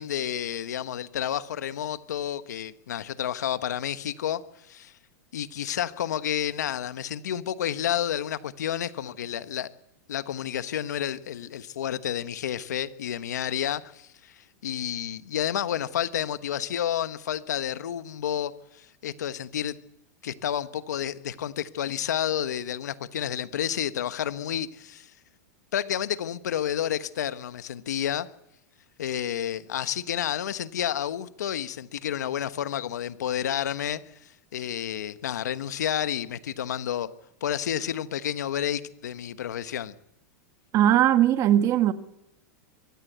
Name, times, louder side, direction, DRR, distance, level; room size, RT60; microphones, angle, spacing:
voice 1, 0.0-4.4 4.7-4.9 5.3-9.7 10.1-19.7 20.2-25.1 25.7-28.3 29.0-34.0 34.5-37.1 37.4-39.9, left 10 dB, 85° left, 1.2 m, -30 dB
voice 2, 40.7-41.9, right 11 dB, 35° right, 1.7 m, -19 dB
23.5 x 16.5 x 8.1 m
hypercardioid pair, 130°, 9 cm